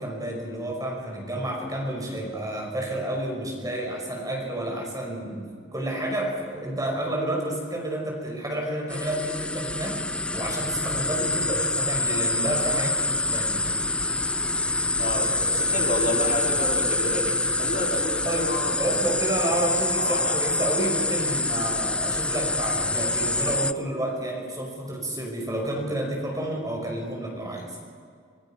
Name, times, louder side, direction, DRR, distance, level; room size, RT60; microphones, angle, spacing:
voice 1, 0.0-5.4 5.7-10.0 10.3-13.7 18.3-18.5 18.8-27.7, right 1 dB, 20° right, 0 dB, 5.3 m, -30 dB
sound 1, 8.9-23.7, left 2 dB, 5° left, 0.4 m, -26 dB
voice 2, 15.0-18.8 20.0-20.7, left 1 dB, 45° left, -3 dB, 4.5 m, -30 dB
26.0 x 20.0 x 5.8 m, 2.1 s
head